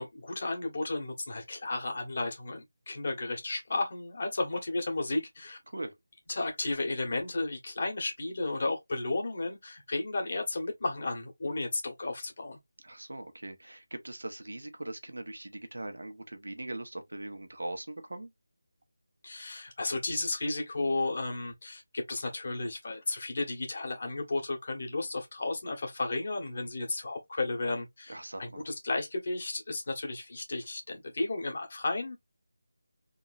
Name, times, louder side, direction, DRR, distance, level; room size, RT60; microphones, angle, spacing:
voice 1, 0.0-5.6 6.3-12.6 19.2-32.2, left 2 dB, 45° left, 1.6 m, -33 dB
voice 2, 12.8-18.3 28.1-28.7, right 1 dB, 90° right, 1.0 m, -41 dB
3.7 x 3.0 x 2.5 m
figure-of-eight pair, 170°, 0 cm